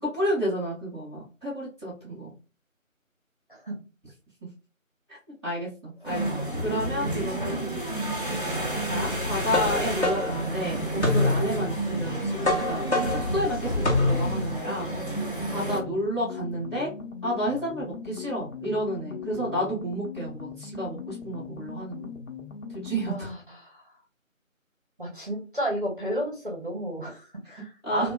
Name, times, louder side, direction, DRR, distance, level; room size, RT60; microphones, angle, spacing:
voice 1, 0.0-2.3 5.1-5.2 5.4-6.3 6.6-7.6 8.9-14.9 15.5-16.9 17.2-22.1 22.8-23.3 27.8-28.1, equal, 20° left, -4 dB, 1.2 m, -31 dB
sound 1, 6.0-15.8, right 1 dB, 40° left, 0.5 m, -31 dB
voice 2, 7.3-7.7 15.6-15.8 23.1-23.9 25.0-28.1, equal, 40° right, -2 dB, 0.6 m, -33 dB
sound 2, 9.5-14.5, left 2 dB, 55° left, 0.8 m, -26 dB
sound 3, 15.6-23.3, left 6 dB, 90° left, 0.9 m, -39 dB
2.9 x 2.1 x 2.2 m, 0.34 s
figure-of-eight pair, 170°, 40 cm